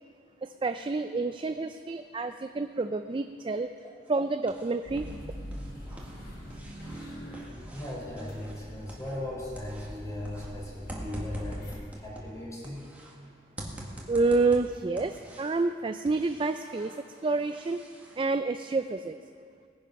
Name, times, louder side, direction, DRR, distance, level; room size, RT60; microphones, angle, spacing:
voice 1, 0.4-3.7 4.1-5.1 13.8-16.9 17.2-17.8 18.2-19.2, right 3 dB, 30° right, 8 dB, 0.4 m, -28 dB
sound 1, 4.0-5.2 5.4-9.3 9.5-13.2 13.6-15.7 16.1-18.2, right 1 dB, 10° right, 1.8 m, -45 dB
sound 2, 4.8-11.7, equal, 65° left, 4.9 m, -43 dB
voice 2, 7.7-12.9, left 1 dB, 20° left, -3 dB, 3.8 m, -38 dB
18.5 x 10.0 x 5.8 m, 2.2 s
head